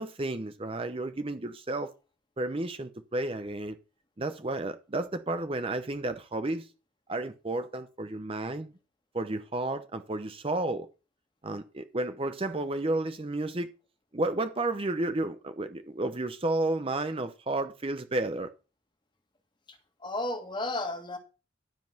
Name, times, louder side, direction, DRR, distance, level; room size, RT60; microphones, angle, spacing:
voice 1, 0.0-1.9 2.4-3.8 4.2-6.7 7.1-8.7 9.1-10.9 11.4-13.7 14.1-18.5, right 2 dB, 30° right, 0.7 m, -32 dB
voice 2, 19.7-21.2, left 2 dB, 25° left, 1.8 m, -34 dB
12.0 x 5.3 x 5.8 m
head